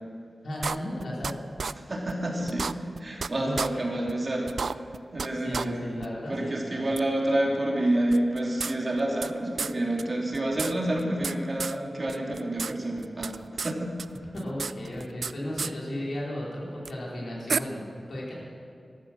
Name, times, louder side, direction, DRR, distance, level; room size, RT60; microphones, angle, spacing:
voice 1, 0.4-1.3 3.4-4.0 5.4-6.9 14.3-17.8 18.1-18.3, left 1 dB, 80° left, -5 dB, 4.5 m, -34 dB
sound 1, 0.6-1.3 1.6-1.7 2.1-2.2 2.5-3.3 3.6-3.7 4.1-4.2 4.5-5.3 5.5-5.7 6.0-6.1 7.0-7.1 8.1-9.3 9.6-9.7 10.0-10.1 10.3-11.3 11.6-11.8 12.1-12.7 13.0-13.7 14.0-15.3 15.6-15.7 16.9-17.0 17.5-17.6, right 5 dB, 75° right, 0.3 m, -31 dB
voice 2, 1.7-5.8 6.3-14.3, right 1 dB, 40° right, -2 dB, 2.9 m, -29 dB
14.5 x 13.0 x 6.4 m, 2.3 s
wide cardioid pair, 90°, 0 cm